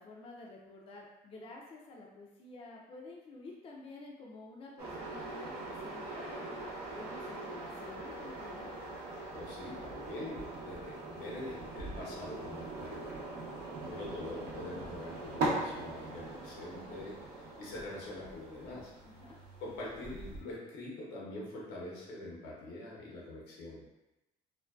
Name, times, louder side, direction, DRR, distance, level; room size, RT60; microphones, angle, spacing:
voice 1, 0.0-8.7 19.0-19.4, left 2 dB, 35° left, -2 dB, 0.4 m, -50 dB
sound 1, 4.8-20.4, right 2 dB, 75° right, 0.7 m, -41 dB
voice 2, 9.3-13.3 13.7-18.9 19.6-23.9, left 1 dB, 85° left, -4 dB, 0.8 m, -44 dB
2.5 x 2.2 x 2.2 m, 0.96 s
cardioid pair, 110°, 17 cm